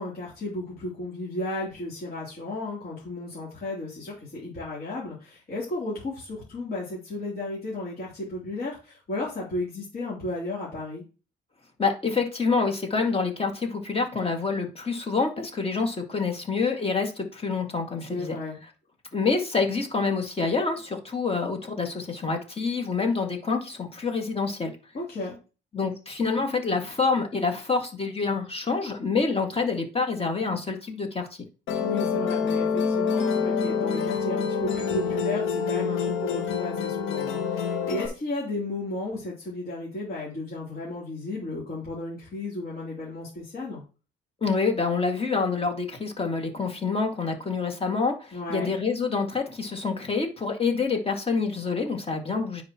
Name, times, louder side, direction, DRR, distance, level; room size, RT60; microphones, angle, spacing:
voice 1, 0.0-11.0 18.1-18.6 24.9-25.3 31.8-43.8 48.3-48.7, left 2 dB, 50° left, -6 dB, 3.2 m, -34 dB
voice 2, 11.8-18.4 19.1-24.7 25.7-31.3 44.4-52.6, left 4 dB, 30° left, 3 dB, 2.1 m, -27 dB
Musical instrument, 31.7-38.1, left 6 dB, 80° left, 1.2 m, -27 dB
9.7 x 5.0 x 3.0 m, 0.33 s
cardioid pair, 90°, 20 cm